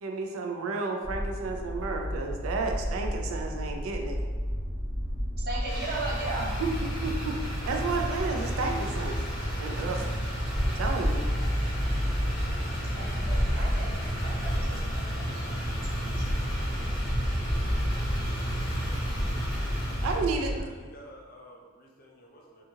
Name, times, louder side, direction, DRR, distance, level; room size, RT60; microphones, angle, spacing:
voice 1, 0.0-4.2 6.4-6.7 7.0-7.3 7.7-9.2 9.6-10.0 10.6-11.3 20.0-20.5, right 4 dB, 80° right, 2 dB, 0.3 m, -32 dB
sound 1, 1.0-20.6, equal, 65° right, 1.2 m, -34 dB
voice 2, 5.5-6.5 12.9-15.5 16.2-16.3, right 3 dB, 45° right, -5 dB, 0.7 m, -37 dB
Motor vehicle (road), 5.6-20.2, equal, ahead, 1.1 m, -30 dB
voice 3, 19.9-22.6, equal, 40° left, -1 dB, 0.4 m, -50 dB
2.7 x 2.4 x 2.7 m, 1.5 s
head